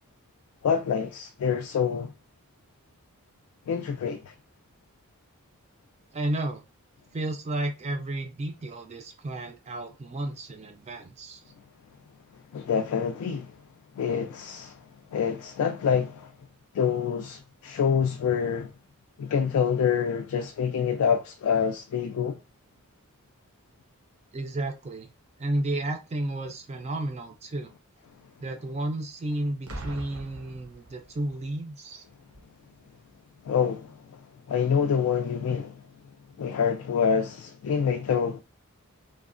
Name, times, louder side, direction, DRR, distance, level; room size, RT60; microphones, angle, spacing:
voice 1, 0.6-2.1 3.7-4.2 12.5-13.5 14.0-14.7 15.1-16.3 16.7-18.7 19.2-22.4 33.5-33.9 34.5-35.8 36.4-38.4, left 7 dB, 80° left, 0.3 m, -26 dB
voice 2, 6.1-6.6 7.1-11.4 24.3-25.1 25.4-27.7 28.4-32.0, right 1 dB, 30° right, 0.3 m, -32 dB
Boom, 29.7-31.4 32.3-32.6, right 1 dB, 85° right, 0.8 m, -41 dB
3.0 x 2.1 x 2.4 m
head